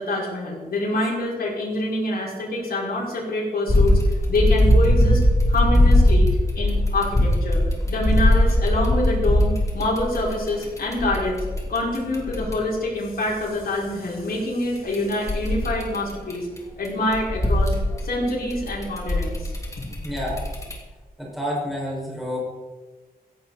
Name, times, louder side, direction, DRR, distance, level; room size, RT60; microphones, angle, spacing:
voice 1, 0.0-4.0 4.3-5.2 5.5-6.3 6.5-7.6 7.9-11.4 11.7-16.5 16.8-17.7 18.0-19.5, left 1 dB, 75° left, -5 dB, 5.8 m, -26 dB
sound 1, 3.7-12.5 14.8-16.6 16.8-20.7, left 1 dB, 20° left, 3.0 m, -20 dB
voice 2, 20.0-20.4 21.2-22.4, equal, ahead, -5 dB, 6.0 m, -29 dB
16.5 x 15.5 x 4.3 m, 1.3 s
wide cardioid pair, 155°, 16 cm